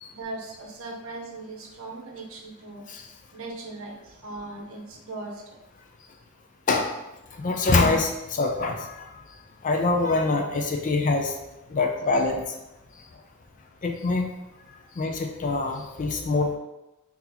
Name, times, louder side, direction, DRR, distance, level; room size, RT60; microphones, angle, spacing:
voice 1, 0.1-2.8 3.3-5.6, right 2 dB, 65° right, 0 dB, 0.7 m, -39 dB
voice 2, 7.3-9.1 9.6-11.3 11.7-12.5 13.8-14.3 15.0-16.5, left 3 dB, 35° left, 3 dB, 0.4 m, -24 dB
2.9 x 2.8 x 3.8 m, 0.96 s
head